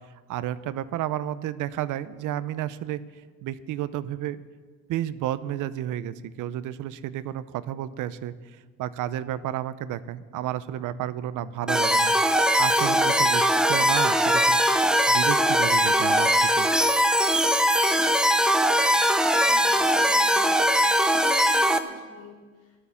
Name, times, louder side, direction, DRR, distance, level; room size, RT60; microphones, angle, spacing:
voice 1, 0.3-3.0 3.4-4.4 4.9-8.3 8.8-12.1 12.6-14.6 15.1-16.7, right 12 dB, 70° right, 15 dB, 0.8 m, -31 dB
sound 1, 11.7-21.8, equal, ahead, 0.9 m, -21 dB
voice 2, 19.4-20.7 21.0-22.8, left 3 dB, 75° left, 2 dB, 4.4 m, -47 dB
15.5 x 12.5 x 7.1 m, 1.5 s
cardioid pair, 105°, 32 cm